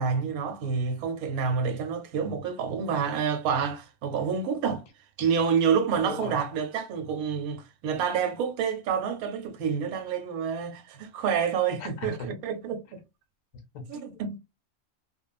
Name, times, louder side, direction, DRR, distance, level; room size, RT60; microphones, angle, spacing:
voice 1, 0.0-4.9 5.2-13.0 13.9-14.4, right 6 dB, 85° right, 1.1 m, -28 dB
voice 2, 6.0-6.3 11.8-12.3 13.7-14.4, left 3 dB, 70° left, 1.2 m, -39 dB
2.9 x 2.3 x 2.2 m
omnidirectional pair, 1.5 m